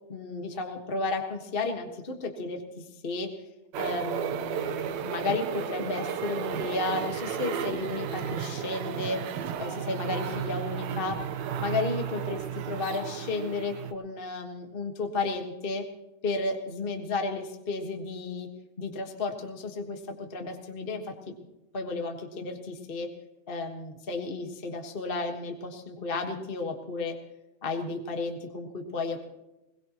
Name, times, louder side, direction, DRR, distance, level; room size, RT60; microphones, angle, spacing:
voice 1, 0.1-3.3 3.8-9.2 9.6-11.2 11.6-15.8 16.2-18.5 18.8-21.3 21.7-23.1 23.5-27.1 27.6-29.3, left 3 dB, 35° left, 3 dB, 0.9 m, -33 dB
sound 1, 3.7-13.9, right 8 dB, 75° right, 2.2 m, -33 dB
21.5 x 21.0 x 3.0 m, 0.95 s
omnidirectional pair, 3.4 m